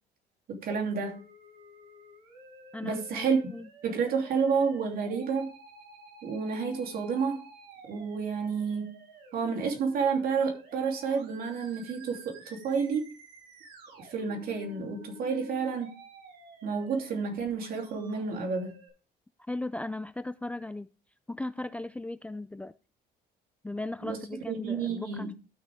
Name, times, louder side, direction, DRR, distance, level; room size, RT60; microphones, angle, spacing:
voice 1, 0.5-1.2 2.8-3.4 3.8-5.5 6.2-7.4 7.9-8.9 9.3-13.1 14.0-15.9 16.6-18.8 24.0-25.3, right 5 dB, 60° right, 3.0 m, -30 dB
Musical instrument, 0.9-18.9, right 1 dB, 80° right, 5.8 m, -52 dB
voice 2, 2.7-3.7 19.5-20.9 21.3-22.7 23.6-25.3, left 2 dB, 10° left, 0.4 m, -37 dB
12.5 x 6.4 x 3.5 m
cardioid pair, 110°, 17 cm